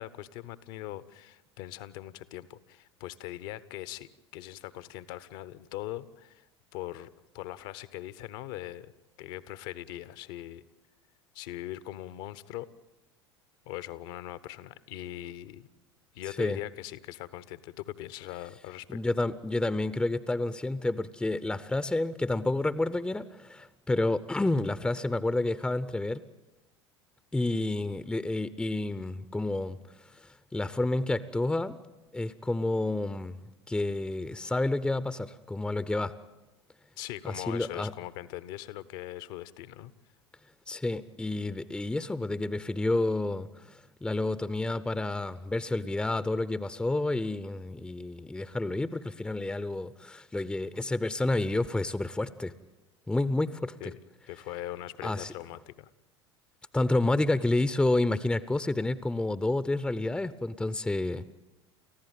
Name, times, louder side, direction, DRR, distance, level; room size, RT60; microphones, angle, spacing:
voice 1, 0.0-6.4 6.7-7.1 7.3-8.9 9.2-10.6 11.3-12.7 13.7-15.7 16.1-19.0 37.0-39.9 53.8-54.0 54.3-55.9, left 14 dB, 55° left, 16 dB, 1.0 m, -41 dB
voice 2, 18.9-26.2 27.3-31.8 32.1-33.4 33.7-36.1 37.2-37.9 40.7-52.5 53.1-53.9 55.0-55.3 56.7-61.3, left 2 dB, 5° left, 15 dB, 0.7 m, -30 dB
29.5 x 15.0 x 9.2 m, 1.1 s
figure-of-eight pair, 75°, 14 cm